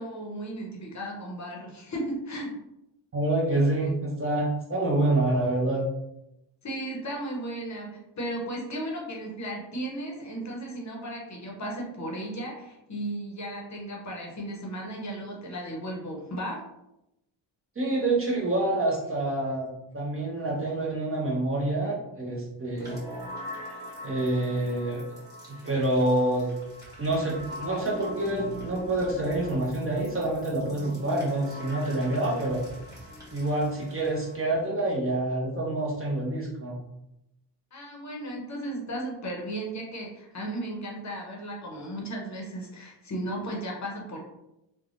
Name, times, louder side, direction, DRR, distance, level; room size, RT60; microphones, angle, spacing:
voice 1, 0.0-2.6 6.6-16.6 37.7-44.2, right 1 dB, 40° left, -1 dB, 0.7 m, -35 dB
voice 2, 3.1-5.9 17.8-23.0 24.0-25.0 25.5-26.5 27.0-32.6 33.3-36.8, right 2 dB, 30° right, -3 dB, 0.6 m, -27 dB
sound 1, 22.7-34.6, equal, 10° right, 1.2 m, -42 dB
3.2 x 2.2 x 2.4 m, 0.87 s
wide cardioid pair, 120°, 46 cm